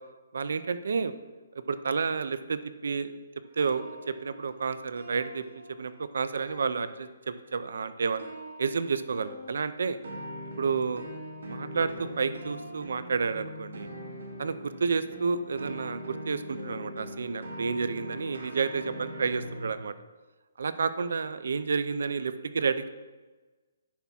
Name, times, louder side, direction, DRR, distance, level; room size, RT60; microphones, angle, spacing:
voice 1, 0.3-1.1 1.5-3.2 3.5-5.4 5.8-8.3 8.6-10.0 10.6-11.1 11.5-13.9 14.4-19.9 20.6-22.9, right 5 dB, 65° right, 13 dB, 0.5 m, -30 dB
sound 1, 3.5-6.0 6.3-7.4 8.2-19.7, equal, 80° right, 2.2 m, -42 dB
10.0 x 3.6 x 5.8 m, 1.3 s
hypercardioid pair, 175°, 0 cm